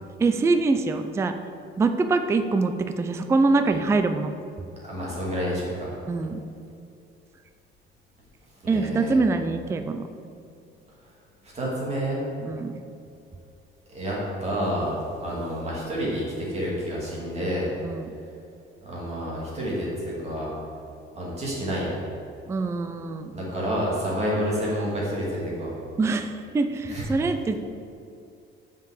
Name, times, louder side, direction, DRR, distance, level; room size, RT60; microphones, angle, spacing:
voice 1, 0.2-1.3 1.8-4.3 6.1-6.4 8.7-10.1 12.4-12.7 17.8-18.1 22.5-23.4 26.0-27.6, right 3 dB, 15° right, 8 dB, 0.3 m, -24 dB
voice 2, 4.8-5.9 8.6-9.2 11.5-12.2 13.9-17.7 18.8-20.5 21.2-22.0 23.3-25.7 26.9-27.1, equal, 30° right, -5 dB, 2.5 m, -29 dB
7.2 x 5.9 x 7.6 m, 2.5 s
cardioid pair, 165°, 21 cm